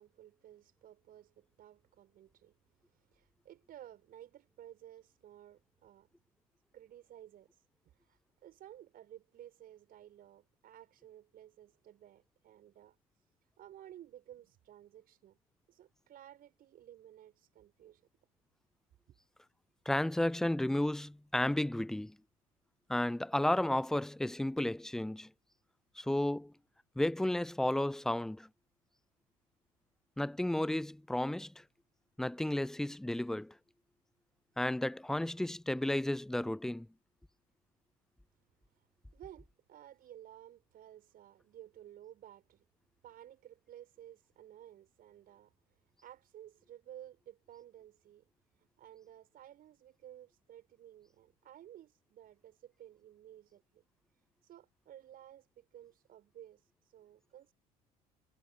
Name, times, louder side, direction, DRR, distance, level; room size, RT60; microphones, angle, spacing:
voice 1, 0.0-2.6 2.9-6.1 6.7-13.0 13.6-15.4 15.7-18.0 38.7-38.9 39.1-42.7 43.0-45.5 46.0-48.3 48.6-53.8 54.4-57.5, right 11 dB, 50° right, 5.8 m, -55 dB
voice 2, 19.9-22.2 22.9-25.3 26.0-26.5 27.0-28.5 30.2-31.6 32.2-33.5 34.6-36.9, left 1 dB, 5° left, 0.3 m, -33 dB
figure-of-eight pair, 55°, 19 cm